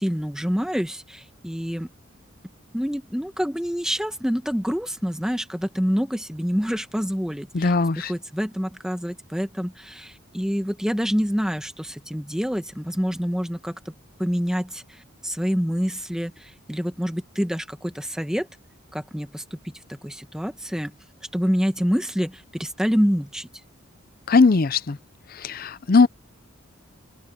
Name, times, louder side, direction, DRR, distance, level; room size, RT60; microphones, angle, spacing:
voice 1, 0.0-1.9 2.7-13.7 14.2-18.5 18.9-19.4 19.9-20.9 21.3-23.5, equal, 5° right, 1.2 m, -27 dB
voice 2, 7.5-8.1 24.3-25.0 25.3-26.1, left 4 dB, 40° left, 0.5 m, -19 dB
open air
head